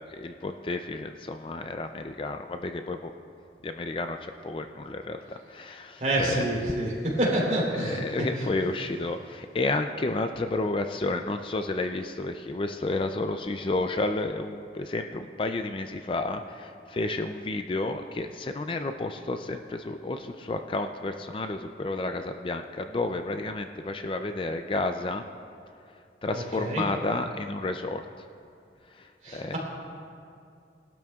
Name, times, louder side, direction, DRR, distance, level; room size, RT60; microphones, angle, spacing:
voice 1, 0.0-3.1 3.6-6.8 7.7-25.2 26.2-28.0 29.0-29.6, left 2 dB, 30° left, 7 dB, 0.4 m, -31 dB
voice 2, 6.0-6.9 7.2-8.0 26.6-26.8 29.2-29.6, right 1 dB, 40° right, -4 dB, 3.5 m, -27 dB
21.0 x 12.5 x 2.4 m, 2.4 s
head